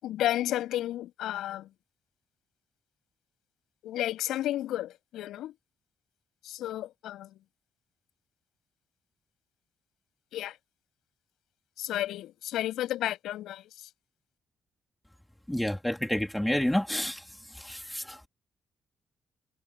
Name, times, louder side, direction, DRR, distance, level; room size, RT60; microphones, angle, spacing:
voice 1, 0.0-1.7 3.8-5.5 6.4-7.4 10.3-10.6 11.8-13.7, left 13 dB, 85° left, 7.4 m, -32 dB
voice 2, 15.5-17.2 17.5-18.3, left 1 dB, 5° left, 3.5 m, -29 dB
cardioid pair, 90°, 0 cm